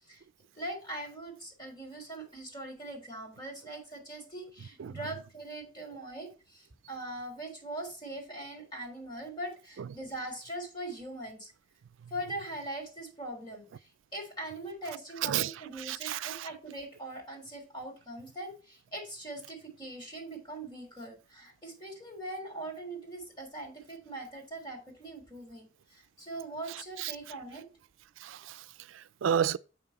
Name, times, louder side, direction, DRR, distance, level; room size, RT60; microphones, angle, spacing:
voice 1, 0.5-11.5 12.1-13.6 14.1-27.7, right 1 dB, 25° left, 3.2 m, -41 dB
voice 2, 15.2-16.5 26.7-27.1 28.2-29.6, right 9 dB, 85° right, 0.4 m, -32 dB
7.4 x 5.8 x 4.2 m
head